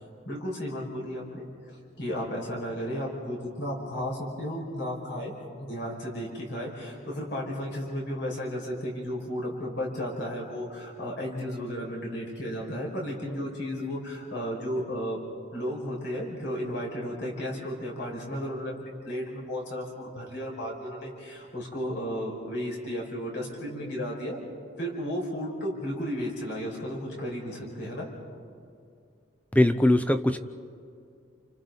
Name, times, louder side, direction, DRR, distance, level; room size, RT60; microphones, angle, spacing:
voice 1, 0.3-1.5 2.0-5.3 5.6-15.2 15.5-24.4 24.8-28.1, equal, 60° left, -3 dB, 5.7 m, -34 dB
voice 2, 29.5-30.4, left 1 dB, 5° left, 7 dB, 0.7 m, -21 dB
30.0 x 29.5 x 4.1 m, 2.4 s
head